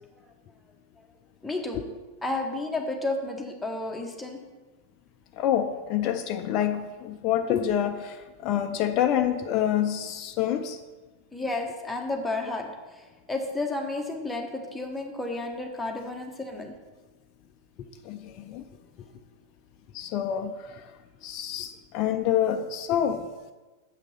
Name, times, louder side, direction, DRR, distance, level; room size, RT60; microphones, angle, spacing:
voice 1, 1.4-1.8 2.2-4.4 11.3-13.0 13.3-16.7, left 2 dB, 5° left, 1 dB, 1.2 m, -32 dB
voice 2, 5.4-10.8 17.8-18.7 19.0-19.1 19.9-20.9 21.2-23.3, left 10 dB, 40° left, 7 dB, 0.5 m, -27 dB
7.5 x 6.0 x 5.5 m, 1.2 s
figure-of-eight pair, 90°, 0 cm